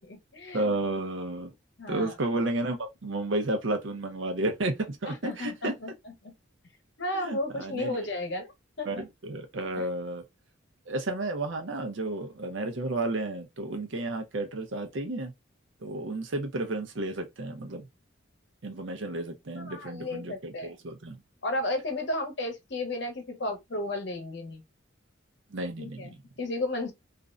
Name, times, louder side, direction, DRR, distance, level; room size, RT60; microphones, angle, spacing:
voice 1, 0.0-0.7 1.8-2.1 5.1-6.3 7.0-8.5 8.8-9.0 9.7-9.9 19.6-20.7 21.4-24.6 25.8-26.9, left 2 dB, 60° left, 0.8 m, -34 dB
voice 2, 0.5-1.5 1.9-5.7 7.1-8.1 8.9-10.2 10.9-15.3 15.8-17.9 18.6-21.2 25.5-26.2, right 2 dB, 70° right, 0.6 m, -32 dB
2.5 x 2.1 x 2.4 m
head